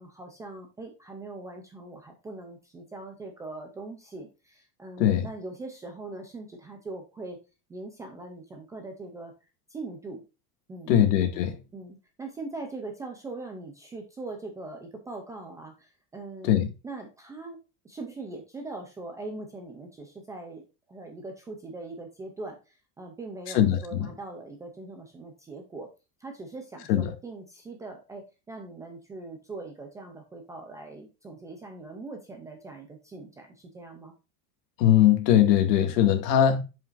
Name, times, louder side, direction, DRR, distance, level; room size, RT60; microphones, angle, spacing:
voice 1, 0.0-7.4 7.7-9.3 9.7-10.2 10.7-11.0 11.7-16.6 16.8-17.6 17.8-20.6 20.9-25.9 26.2-34.1, right 2 dB, 10° right, 0.4 m, -41 dB
voice 2, 10.9-11.6 16.4-16.7 23.5-24.1 26.9-27.1 34.8-36.6, left 10 dB, 80° left, 2.1 m, -21 dB
7.7 x 7.3 x 2.5 m
cardioid pair, 180°, 47 cm